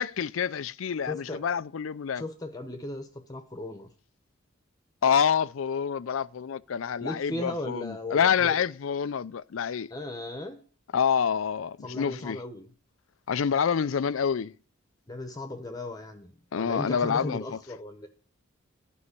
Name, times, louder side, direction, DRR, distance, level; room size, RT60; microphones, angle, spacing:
voice 1, 0.0-2.2 5.0-9.9 10.9-12.4 13.3-14.5 16.5-17.6, left 7 dB, 80° left, 0.5 m, -27 dB
voice 2, 1.1-1.4 2.1-3.9 7.0-8.6 9.9-10.6 11.8-12.7 15.1-18.1, left 1 dB, 20° left, 1.1 m, -37 dB
11.5 x 5.5 x 8.3 m
head